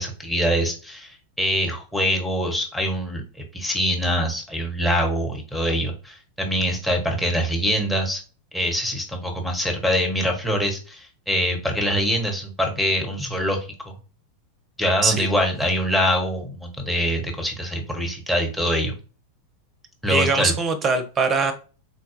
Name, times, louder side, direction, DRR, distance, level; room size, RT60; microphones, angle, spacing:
voice 1, 0.0-8.2 8.5-13.6 14.8-19.0 20.0-20.5, equal, ahead, 3 dB, 0.9 m, -24 dB
voice 2, 20.1-21.5, right 4 dB, 25° right, 9 dB, 0.6 m, -21 dB
4.1 x 2.2 x 2.9 m, 0.36 s
figure-of-eight pair, 90°, 0 cm